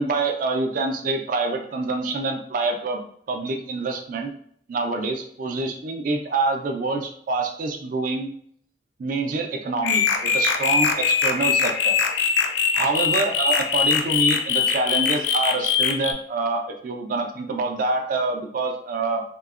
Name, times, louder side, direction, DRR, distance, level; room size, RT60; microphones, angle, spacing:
voice 1, 0.0-3.0 3.3-4.3 4.7-8.3 9.0-12.0 12.7-19.2, right 3 dB, 50° right, 3 dB, 0.3 m, -26 dB
sound 1, 9.8-16.1, left 6 dB, 90° left, 0.3 m, -22 dB
3.6 x 2.0 x 2.4 m, 0.63 s
head